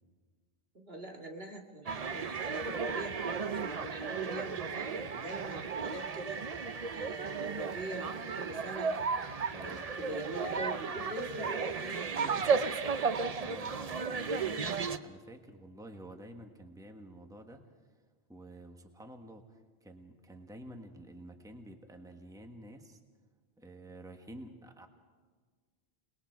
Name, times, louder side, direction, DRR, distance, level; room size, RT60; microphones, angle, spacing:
voice 1, 0.7-6.4 6.9-9.0 9.6-12.5, right 1 dB, 70° right, 1 dB, 2.5 m, -43 dB
sound 1, 1.9-15.0, right 5 dB, 40° right, 0.7 m, -34 dB
voice 2, 9.5-9.9 13.3-17.6 18.3-23.0 23.6-24.9, right 1 dB, 5° right, 5 dB, 1.4 m, -50 dB
28.5 x 20.5 x 4.6 m, 1.5 s
omnidirectional pair, 1.0 m